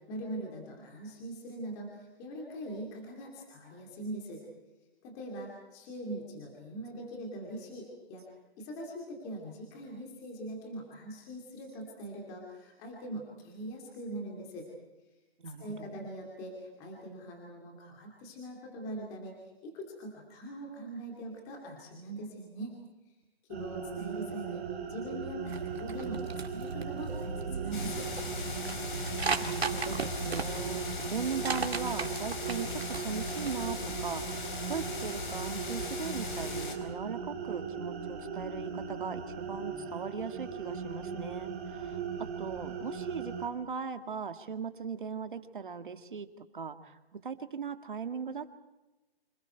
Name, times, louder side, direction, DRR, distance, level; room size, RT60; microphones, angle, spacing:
voice 1, 0.1-4.4 5.0-8.2 8.6-14.7 15.6-19.4 19.6-22.7 23.5-24.6 24.9-28.1, right 1 dB, 10° left, 0 dB, 2.7 m, -42 dB
voice 2, 15.4-15.9 29.0-48.5, right 6 dB, 55° right, 8 dB, 2.1 m, -39 dB
sound 1, 23.5-43.5, right 6 dB, 15° right, 1.9 m, -39 dB
sound 2, 25.5-33.7, right 5 dB, 85° right, 2.4 m, -37 dB
sound 3, 27.7-36.8, left 4 dB, 55° left, 4.5 m, -39 dB
30.0 x 26.5 x 4.5 m, 1.0 s
hypercardioid pair, 175°, 31 cm